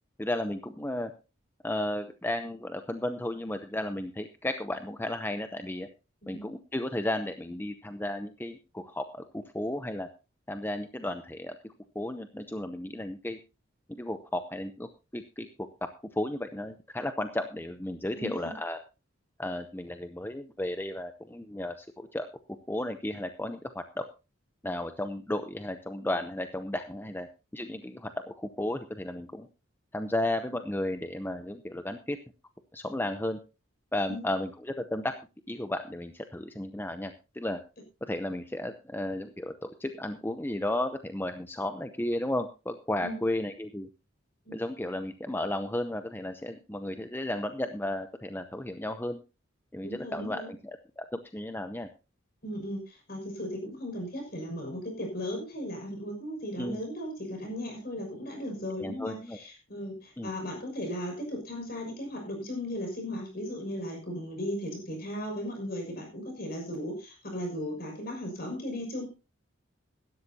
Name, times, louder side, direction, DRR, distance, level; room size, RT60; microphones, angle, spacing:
voice 1, 0.2-1.1 1.6-5.9 6.3-10.1 10.5-13.4 13.9-15.5 16.1-18.8 19.4-22.3 22.7-24.1 24.6-27.3 27.5-29.5 29.9-32.2 32.7-33.4 33.9-35.1 35.5-37.6 38.0-43.9 44.5-49.2 49.7-51.9 56.6-56.8 58.8-59.4 60.2-60.3, left 1 dB, 10° left, 8 dB, 0.7 m, -34 dB
voice 2, 18.2-18.5 34.1-34.2 43.0-43.2 44.5-44.6 49.8-50.5 52.4-52.8 53.1-69.1, equal, 50° left, 3 dB, 6.2 m, -36 dB
17.0 x 12.5 x 2.8 m, 0.30 s
head